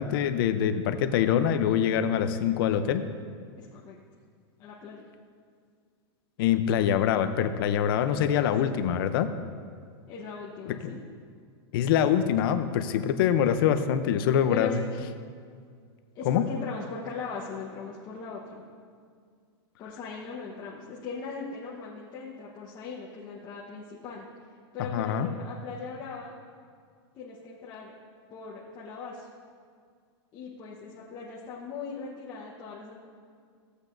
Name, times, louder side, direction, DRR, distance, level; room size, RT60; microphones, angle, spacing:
voice 1, 0.0-3.0 6.4-9.3 10.7-10.9 11.7-14.8 16.3-16.4 24.9-25.3, left 9 dB, 55° left, 9 dB, 0.7 m, -24 dB
voice 2, 3.6-4.0 4.6-5.1 8.6-8.8 10.1-11.0 14.5-14.8 16.1-18.6 19.8-24.2 24.7-26.3 27.1-27.9 28.3-29.3 30.3-33.0, left 5 dB, 30° left, -5 dB, 1.1 m, -39 dB
16.5 x 8.1 x 2.6 m, 2.1 s
supercardioid pair, 150°, 14 cm